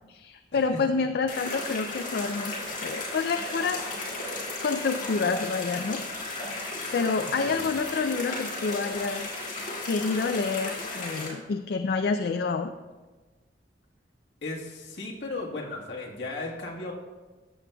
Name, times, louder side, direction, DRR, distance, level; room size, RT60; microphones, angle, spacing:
voice 1, 0.1-2.5 2.8-3.8 4.6-6.0 6.9-9.3 9.9-12.7, left 4 dB, 60° left, 7 dB, 0.4 m, -28 dB
sound 1, 1.3-11.3, left 2 dB, 45° left, 2.2 m, -35 dB
voice 2, 14.4-16.9, left 2 dB, 75° left, -2 dB, 1.5 m, -36 dB
14.0 x 7.5 x 2.3 m, 1.3 s
head